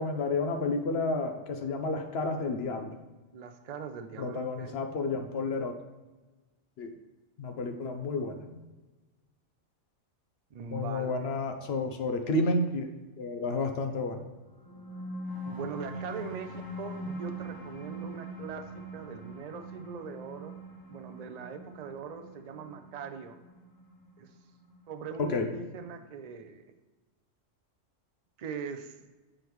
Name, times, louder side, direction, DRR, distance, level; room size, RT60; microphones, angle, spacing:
voice 1, 0.0-3.0 4.2-5.7 6.8-6.9 7.4-8.6 10.7-12.9 13.2-14.2 25.3-25.5, left 2 dB, 60° left, 5 dB, 0.8 m, -31 dB
voice 2, 3.3-4.8 10.5-11.2 15.4-20.6 20.9-23.4 24.2-24.3 24.9-26.6 28.4-29.0, right 5 dB, 75° right, 7 dB, 0.3 m, -41 dB
sound 1, 14.5-25.5, right 1 dB, 35° left, 0.3 m, -42 dB
7.5 x 4.9 x 3.1 m, 1.2 s
omnidirectional pair, 1.3 m